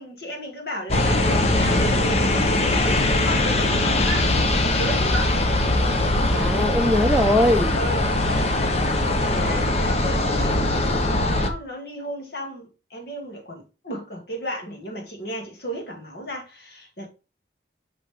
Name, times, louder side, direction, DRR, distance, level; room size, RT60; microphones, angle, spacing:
voice 1, 0.0-4.3 4.7-5.4 7.7-8.5 9.0-17.1, equal, 60° left, 2.4 m, -34 dB
Ågotnes Terminal Binaural, 0.9-11.5, left 2 dB, 35° left, 0.9 m, -21 dB
voice 2, 6.3-7.7, left 1 dB, ahead, 0.7 m, -20 dB
5.9 x 5.3 x 3.7 m
head